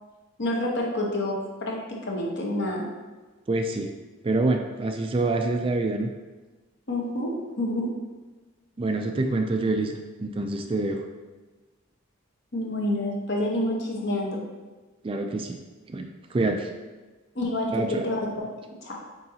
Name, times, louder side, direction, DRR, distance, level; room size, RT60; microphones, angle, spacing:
voice 1, 0.4-2.9 6.9-8.0 12.5-14.4 17.3-18.5 18.8-19.0, left 1 dB, 55° left, -1 dB, 1.1 m, -28 dB
voice 2, 3.5-3.9 4.2-6.1 8.8-11.1 15.0-15.6 15.9-16.7 17.7-18.1, right 2 dB, 25° right, 5 dB, 0.3 m, -26 dB
8.7 x 3.8 x 2.8 m, 1.3 s
head